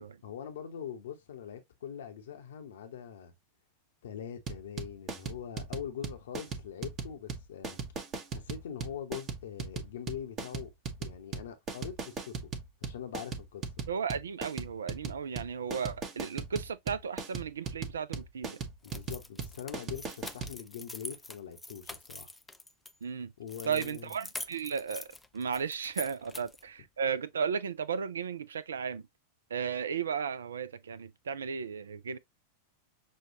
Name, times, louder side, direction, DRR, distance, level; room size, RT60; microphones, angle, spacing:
voice 1, 0.0-3.3 4.0-7.8 8.3-10.7 11.0-12.5 12.8-13.6 18.8-22.3 23.4-24.1, left 8 dB, 60° left, 0.8 m, -43 dB
sound 1, 4.5-20.5, right 5 dB, 30° right, 1.0 m, -38 dB
voice 2, 13.9-18.6 23.0-23.3 23.6-25.1 25.3-29.0 29.5-32.2, right 6 dB, 65° right, 0.4 m, -34 dB
sound 2, 18.8-22.9 23.5-26.7, left 2 dB, 5° left, 0.4 m, -45 dB
6.3 x 2.3 x 2.7 m
figure-of-eight pair, 90°, 0 cm